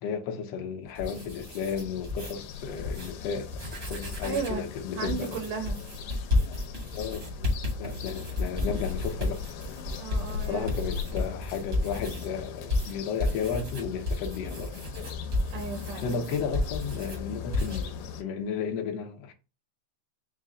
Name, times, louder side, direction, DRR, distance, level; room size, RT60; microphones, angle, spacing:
voice 1, 0.0-3.5 3.9-5.4 6.9-7.3 7.8-9.4 10.3-14.7 16.0-19.3, left 6 dB, 70° left, 1.6 m, -33 dB
sound 1, 0.8-2.3 2.8-3.1 3.4-4.6 5.1-12.3 12.7-17.2 17.5-17.8, left 2 dB, 55° right, 0.6 m, -32 dB
sound 2, 1.1-18.2, left 6 dB, 85° left, 2.1 m, -39 dB
voice 2, 4.2-4.7 5.0-5.8 10.0-10.7 15.5-16.2, right 6 dB, 90° right, 2.5 m, -34 dB
5.5 x 2.1 x 3.7 m
omnidirectional pair, 3.5 m